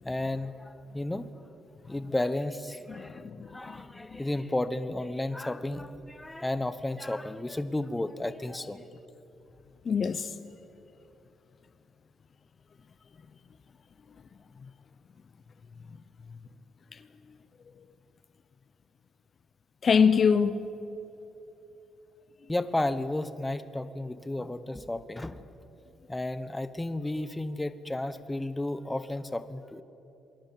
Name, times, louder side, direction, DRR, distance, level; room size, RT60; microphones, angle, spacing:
voice 1, 0.0-1.3 1.9-8.9 22.5-25.4 26.1-29.8, left 1 dB, 10° left, 1.2 m, -33 dB
voice 2, 2.9-3.8 4.1-4.2 9.8-10.3 16.9-17.0 19.8-20.7, left 6 dB, 45° left, 0.9 m, -25 dB
27.5 x 21.5 x 7.7 m
cardioid pair, 90°, 0 cm